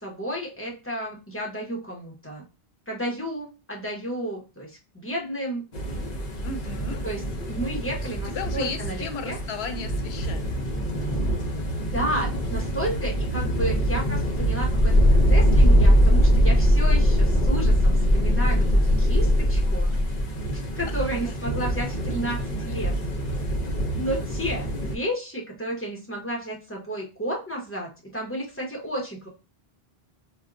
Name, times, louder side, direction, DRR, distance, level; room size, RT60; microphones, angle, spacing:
voice 1, 0.0-2.4 2.9-5.7 7.0-7.2 7.5-9.4 11.9-19.9 20.8-22.9 24.0-29.3, right 1 dB, 15° left, -2 dB, 0.8 m, -32 dB
sound 1, 5.7-25.0, equal, 50° left, 0.7 m, -22 dB
voice 2, 6.4-7.0 8.1-10.5 20.9-21.3, left 4 dB, 85° left, 8 dB, 0.8 m, -35 dB
4.3 x 2.2 x 2.5 m, 0.30 s
omnidirectional pair, 1.0 m